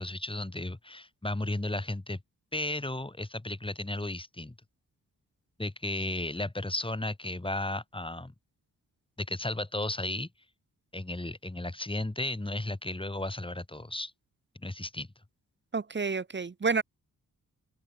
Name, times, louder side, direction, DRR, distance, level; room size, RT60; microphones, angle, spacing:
voice 1, 0.0-2.2 2.5-4.6 5.6-8.3 9.2-10.3 10.9-14.1 14.6-15.1, left 1 dB, 15° left, 5.5 m, -34 dB
voice 2, 15.7-16.8, right 4 dB, 30° right, 1.1 m, -29 dB
open air
cardioid pair, 80°, 35 cm